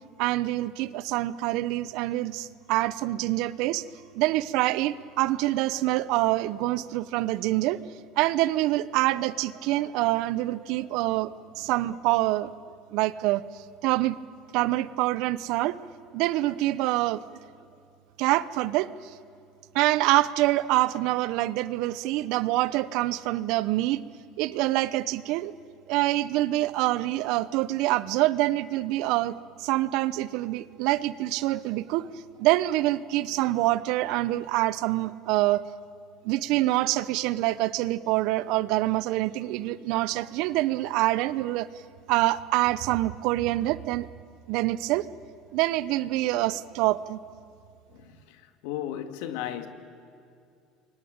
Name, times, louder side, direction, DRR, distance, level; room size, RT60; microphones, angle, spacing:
voice 1, 0.2-3.8 4.1-7.8 8.2-12.5 12.9-14.2 14.5-15.8 16.1-17.2 18.2-18.9 19.7-24.0 24.4-25.5 25.9-32.1 32.4-35.6 36.2-41.7 42.1-44.1 44.5-45.0 45.5-47.2, right 17 dB, 70° right, 0.9 m, -26 dB
voice 2, 48.6-49.7, left 11 dB, 80° left, 2.0 m, -34 dB
27.5 x 23.0 x 8.8 m
supercardioid pair, 110°, 0 cm